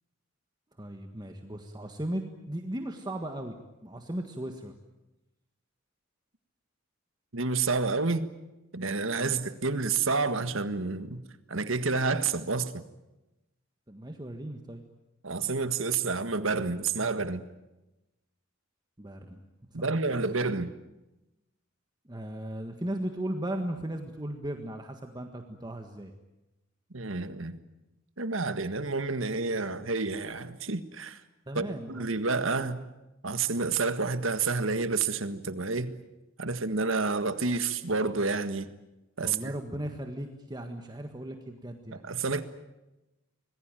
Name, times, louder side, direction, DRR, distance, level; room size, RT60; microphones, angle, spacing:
voice 1, 0.8-3.5 3.8-4.7 9.2-9.4 13.9-14.8 19.0-19.4 19.8-19.9 22.1-26.1 31.5-32.0 39.2-42.0, right 1 dB, 20° right, 5 dB, 1.6 m, -37 dB
voice 2, 7.3-8.3 8.7-11.2 11.5-12.8 15.2-17.4 19.7-20.7 26.9-27.6 28.2-31.2 31.5-32.8 33.2-35.9 36.4-38.7 39.2-39.5 41.9-42.4, right 4 dB, 75° right, 11 dB, 1.7 m, -29 dB
26.0 x 20.0 x 9.1 m, 0.99 s
head